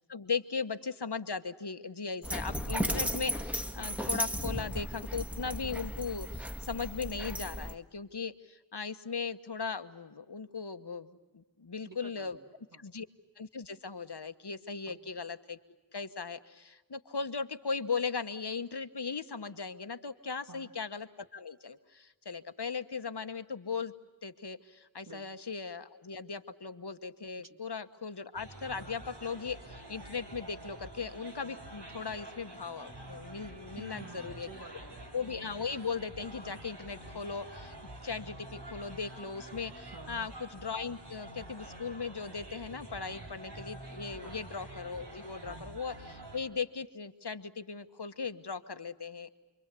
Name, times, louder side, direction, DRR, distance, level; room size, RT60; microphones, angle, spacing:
voice 1, 0.1-12.4 12.8-13.0 13.4-15.6 15.9-23.9 24.2-34.5 35.1-37.7 38.0-49.3, left 5 dB, 70° left, 9 dB, 1.3 m, -38 dB
Dog, 2.2-7.7, equal, 5° right, 1.7 m, -35 dB
voice 2, 11.9-12.9 14.9-15.0 20.5-20.7 25.1-25.2 27.4-27.6 33.8-35.2 39.9-40.3 44.1-44.4 45.5-45.6, right 3 dB, 50° right, 5 dB, 2.4 m, -50 dB
sound 1, 28.3-46.4, right 1 dB, 75° right, 5.1 m, -47 dB
29.0 x 23.5 x 8.4 m, 1.1 s
wide cardioid pair, 45°, 41 cm